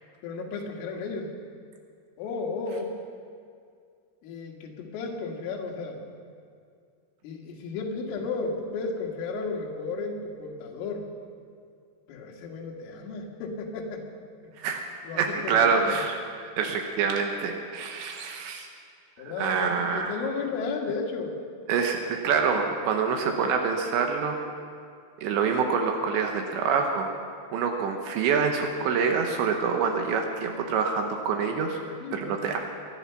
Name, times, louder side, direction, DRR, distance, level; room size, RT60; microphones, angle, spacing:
voice 1, 0.2-1.3 2.2-3.0 4.2-6.1 7.2-11.1 12.1-14.0 15.1-16.0 19.2-21.4 32.0-32.5, left 4 dB, 85° left, 0 dB, 4.2 m, -33 dB
voice 2, 15.2-18.7 19.4-20.2 21.7-24.4 25.2-27.1 27.5-31.8 32.1-32.6, right 5 dB, 75° right, 3 dB, 3.0 m, -26 dB
22.0 x 11.0 x 5.7 m, 2.3 s
omnidirectional pair, 5.6 m